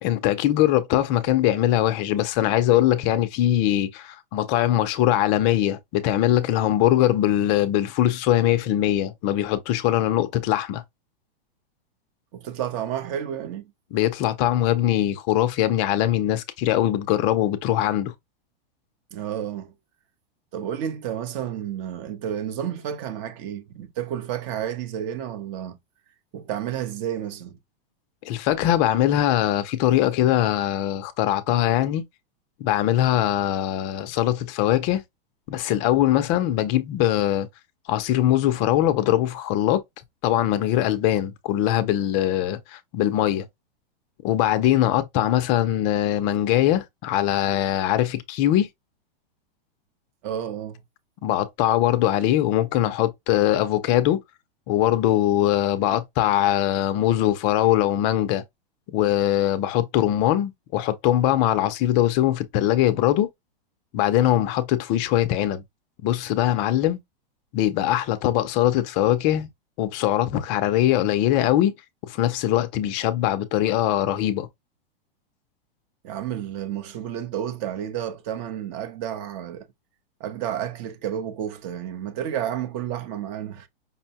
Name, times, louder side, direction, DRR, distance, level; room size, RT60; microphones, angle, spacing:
voice 1, 0.0-10.8 13.9-18.1 28.2-32.1 32.6-35.0 35.5-37.5 37.9-39.8 40.2-43.5 44.2-48.7 51.2-54.2 54.7-58.4 58.9-63.3 63.9-65.6 66.0-67.0 67.5-69.5 69.8-71.7 72.1-74.5, left 12 dB, 25° left, 0.4 m, -22 dB
voice 2, 12.3-13.7 19.1-19.7 20.5-25.8 26.3-27.6 50.2-50.8 76.0-79.7 80.2-83.7, right 10 dB, 35° right, 0.6 m, -31 dB
5.4 x 2.1 x 2.7 m
supercardioid pair, 155°, 30 cm